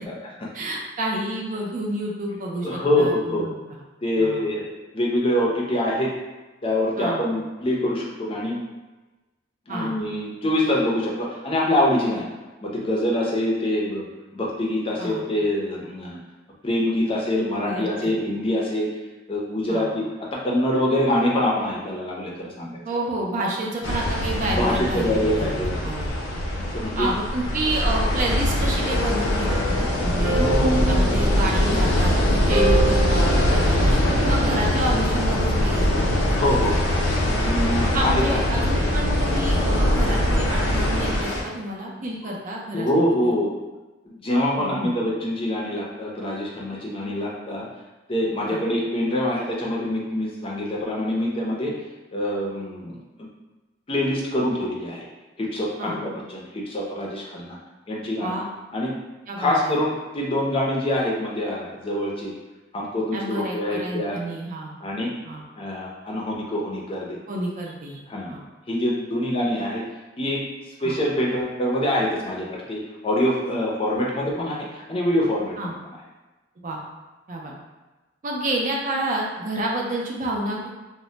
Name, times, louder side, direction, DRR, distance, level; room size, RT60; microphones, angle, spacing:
voice 1, 0.5-3.8 4.2-4.4 7.0-7.2 9.7-10.0 15.0-15.3 17.6-18.2 19.7-19.9 22.9-26.1 27.0-30.4 30.9-35.9 36.6-36.8 37.9-42.9 43.2-43.3 44.6-45.0 48.4-48.6 55.8-56.0 58.2-58.4 59.3-59.8 63.1-64.7 65.2-65.4 67.3-68.0 68.3-68.4 70.8-71.0 75.6-75.7 76.6-76.8 77.3-77.5 78.2-80.7, right 1 dB, 40° right, -1 dB, 0.4 m, -29 dB
voice 2, 2.6-3.5 4.0-4.7 4.9-6.1 6.6-8.6 9.7-12.3 12.6-14.1 14.3-16.2 16.6-18.9 19.3-20.0 20.3-22.8 24.5-25.9 26.5-27.1 30.3-31.1 36.3-36.8 37.4-38.4 38.7-38.8 42.2-42.3 42.7-43.5 44.1-47.7 48.1-51.7 52.1-53.0 53.9-55.1 55.4-57.6 57.9-58.4 58.7-58.9 59.4-62.3 62.7-64.2 64.8-65.1 65.6-67.2 68.1-68.3 68.7-69.8 70.2-70.4 70.8-75.7, left 1 dB, 30° left, -3 dB, 0.5 m, -25 dB
sound 1, 23.8-41.4, left 1 dB, 85° left, 0.6 m, -22 dB
sound 2, 28.8-34.5, right 2 dB, 80° right, 0.7 m, -28 dB
2.1 x 2.1 x 3.8 m, 1.1 s
head